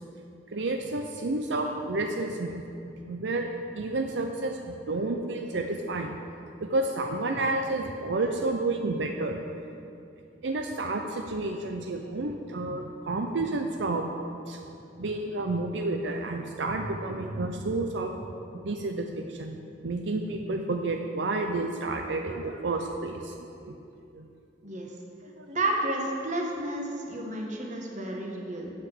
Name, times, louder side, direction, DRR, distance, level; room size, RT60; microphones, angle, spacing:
voice 1, 0.5-2.6 3.1-3.5 3.7-6.1 6.6-9.4 10.4-14.0 14.5-14.6 15.0-18.1 18.5-23.4 23.6-23.8 24.1-24.3 25.4-25.5, right 2 dB, 80° right, 3 dB, 0.6 m, -30 dB
voice 2, 24.6-24.9 25.5-28.7, right 1 dB, 45° right, 0 dB, 1.3 m, -31 dB
8.6 x 5.9 x 7.7 m, 2.6 s
head